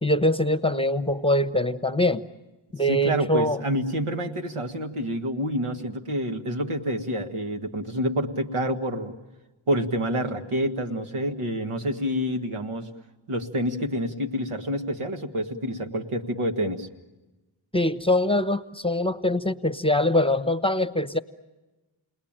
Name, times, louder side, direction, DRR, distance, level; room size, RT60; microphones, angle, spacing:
voice 1, 0.0-2.2 2.7-3.6 17.7-21.2, left 1 dB, 10° left, 12 dB, 1.1 m, -23 dB
voice 2, 2.9-9.1 9.7-12.9 13.3-16.9, equal, 85° right, 6 dB, 1.9 m, -28 dB
29.5 x 20.5 x 8.9 m, 1.1 s
cardioid pair, 50°, 50 cm